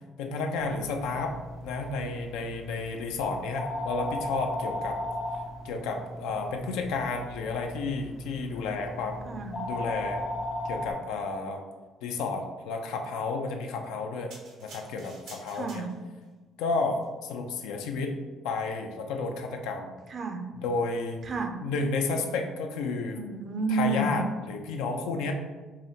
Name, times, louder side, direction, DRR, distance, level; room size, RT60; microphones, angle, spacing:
voice 1, 0.2-1.3 1.6-5.0 5.6-9.4 9.7-10.2 10.6-11.6 12.0-14.3 14.6-15.8 16.6-18.1 18.4-19.9 20.5-21.2 21.6-23.2 23.7-25.3, left 3 dB, 85° left, 3 dB, 0.4 m, -31 dB
sound 1, 0.6-10.9, left 1 dB, 35° left, 0.6 m, -37 dB
voice 2, 9.2-9.6 15.5-15.9 20.1-20.4 21.2-21.5 23.1-24.2, right 3 dB, 50° right, 5 dB, 0.5 m, -30 dB
sound 2, 14.3-16.3 16.9-17.1, right 3 dB, 85° right, 0.9 m, -49 dB
4.8 x 2.1 x 2.7 m, 1.3 s
supercardioid pair, 80°, 0 cm